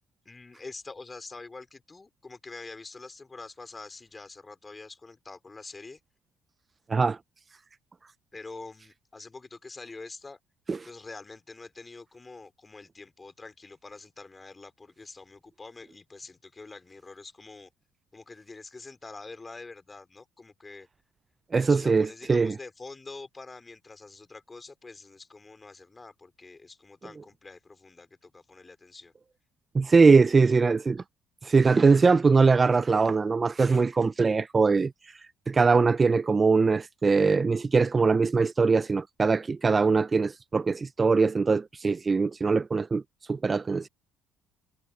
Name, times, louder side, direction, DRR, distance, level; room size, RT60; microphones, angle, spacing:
voice 1, 0.3-6.0 8.3-10.4 10.8-17.7 18.1-20.9 21.7-29.1 30.4-30.6, left 3 dB, 20° left, 3.6 m, -46 dB
voice 2, 21.5-22.5 29.7-31.0 31.4-34.9 35.5-43.0 43.3-43.9, right 4 dB, 30° right, 0.4 m, -22 dB
supercardioid pair, 90°, 0 cm